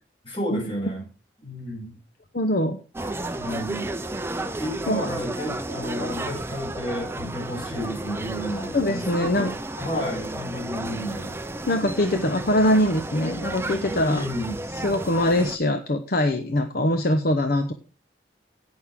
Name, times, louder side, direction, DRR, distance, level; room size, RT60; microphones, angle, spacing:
voice 1, 0.2-1.1 1.4-2.0 3.4-3.9 4.6-11.4 14.0-14.6, equal, 30° left, -1 dB, 6.1 m, -31 dB
voice 2, 2.3-3.1 4.9-5.0 8.7-9.5 11.7-14.2 14.7-17.7, left 1 dB, 55° left, 6 dB, 0.9 m, -23 dB
sound 1, 2.9-15.6, right 2 dB, 15° right, 0.5 m, -33 dB
17.0 x 6.4 x 3.6 m, 0.34 s
head